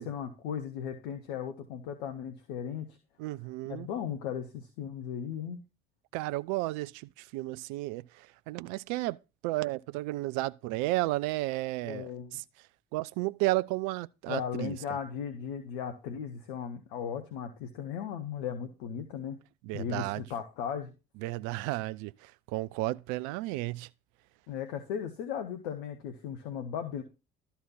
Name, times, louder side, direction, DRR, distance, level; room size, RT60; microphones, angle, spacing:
voice 1, 0.0-2.9 3.6-5.6 11.8-12.4 14.3-19.4 19.7-20.9 24.5-27.0, left 8 dB, 75° left, 1.1 m, -37 dB
voice 2, 3.2-3.9 6.1-9.2 9.4-12.4 12.9-14.8 19.6-20.2 21.2-23.9, right 19 dB, 65° right, 0.5 m, -33 dB
12.5 x 4.3 x 5.7 m
figure-of-eight pair, 50°, 32 cm